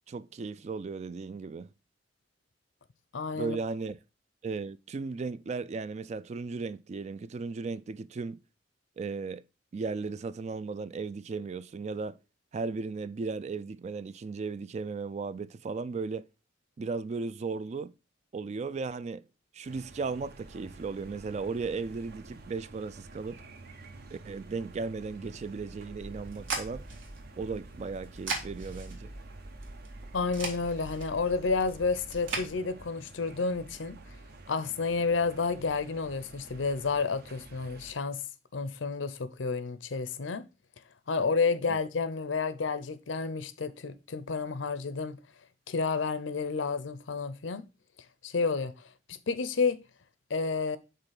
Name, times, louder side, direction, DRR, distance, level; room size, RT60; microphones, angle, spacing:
voice 1, 0.1-1.7 3.3-4.0 4.4-8.4 9.0-9.4 9.7-12.2 12.5-16.3 16.8-17.9 18.3-19.3 19.5-23.4 24.1-26.9 27.4-29.1 41.7-41.8, right 4 dB, 35° right, 0.3 m, -36 dB
voice 2, 3.1-3.6 30.1-34.0 34.5-38.2 38.5-40.4 41.1-45.2 45.7-47.6 48.2-48.7 49.1-49.8 50.3-50.8, left 4 dB, 75° left, 0.6 m, -30 dB
sound 1, 19.6-37.9, right 2 dB, 55° right, 0.8 m, -49 dB
sound 2, 26.0-32.5, right 3 dB, 80° right, 2.0 m, -40 dB
5.6 x 3.8 x 5.7 m
head